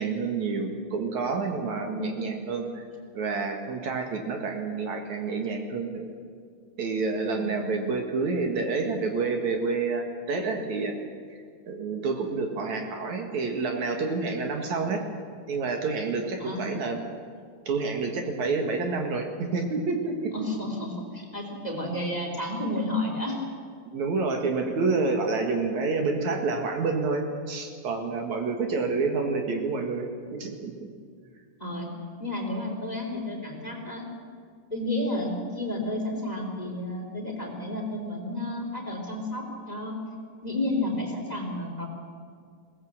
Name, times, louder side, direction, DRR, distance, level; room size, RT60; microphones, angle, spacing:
voice 1, 0.0-2.9 3.1-6.1 6.8-11.0 11.7-15.0 15.5-17.0 17.7-20.3 23.8-30.9, right 4 dB, 60° right, 3 dB, 2.9 m, -28 dB
voice 2, 1.8-2.3 7.3-7.8 16.4-16.8 20.3-23.4 31.6-31.9 32.2-34.0 34.7-40.0 40.4-41.9, left 1 dB, 10° left, 1 dB, 3.0 m, -31 dB
21.5 x 18.0 x 7.7 m, 2.1 s
omnidirectional pair, 3.9 m